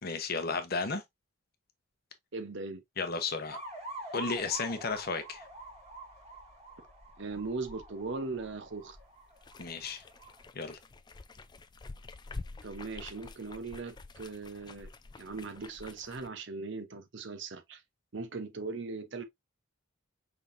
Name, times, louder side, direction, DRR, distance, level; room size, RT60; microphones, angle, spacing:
voice 1, 0.0-1.0 3.0-3.6 4.1-5.4 9.6-10.0 10.5-10.8, left 4 dB, 45° left, 0.9 m, -33 dB
voice 2, 2.3-2.8 7.2-9.0 12.6-14.9 15.2-17.8 18.1-19.2, right 3 dB, 55° right, 0.8 m, -39 dB
sound 1, 3.5-10.4, right 1 dB, 30° right, 1.9 m, -46 dB
sound 2, 9.4-16.3, left 3 dB, 20° left, 0.3 m, -48 dB
5.8 x 3.5 x 2.6 m
head